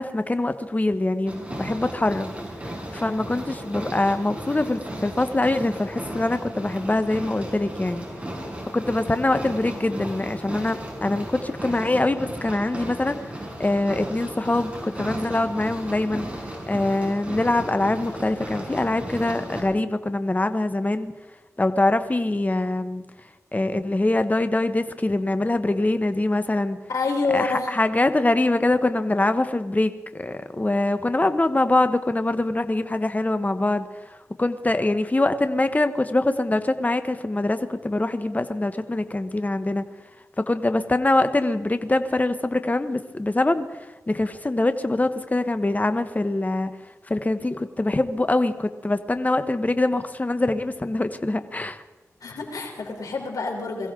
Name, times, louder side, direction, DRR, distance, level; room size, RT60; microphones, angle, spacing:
voice 1, 0.0-2.3 2.9-8.1 8.7-21.1 21.6-23.0 23.5-26.8 27.3-39.8 40.4-51.8, left 2 dB, 25° left, 10 dB, 1.1 m, -24 dB
sound 1, 1.3-19.6, right 1 dB, 20° right, 5.6 m, -35 dB
voice 2, 26.9-27.7 52.2-53.9, left 4 dB, 85° left, 0 dB, 3.7 m, -27 dB
22.5 x 15.5 x 3.8 m, 1.2 s
cardioid pair, 55°, 6 cm